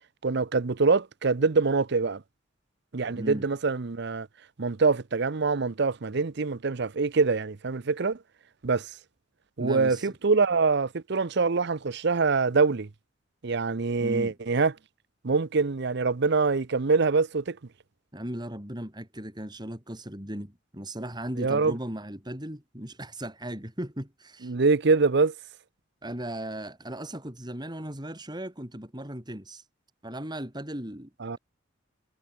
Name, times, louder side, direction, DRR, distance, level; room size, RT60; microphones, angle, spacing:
voice 1, 0.2-2.2 2.9-4.3 4.6-8.2 8.6-8.9 9.6-12.9 13.4-14.7 15.2-17.6 21.4-21.8 24.4-25.3 31.2-31.4, right 4 dB, 60° right, 0.7 m, -24 dB
voice 2, 3.1-3.5 9.6-10.1 14.0-14.3 18.1-24.5 26.0-29.6 30.0-31.1, right 1 dB, 20° right, 6.7 m, -37 dB
head